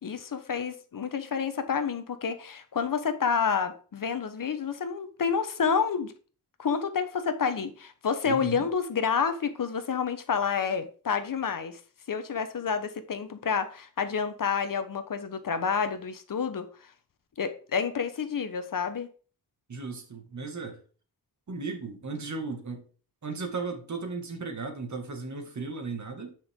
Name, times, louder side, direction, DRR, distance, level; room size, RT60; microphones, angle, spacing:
voice 1, 0.0-6.1 6.6-11.8 12.1-16.7 17.4-19.1, left 6 dB, 60° left, 1.1 m, -29 dB
voice 2, 8.3-8.7 19.7-20.8 21.5-22.8 23.2-26.4, right 4 dB, 50° right, 2.2 m, -36 dB
10.0 x 5.8 x 3.7 m
wide cardioid pair, 130°, 37 cm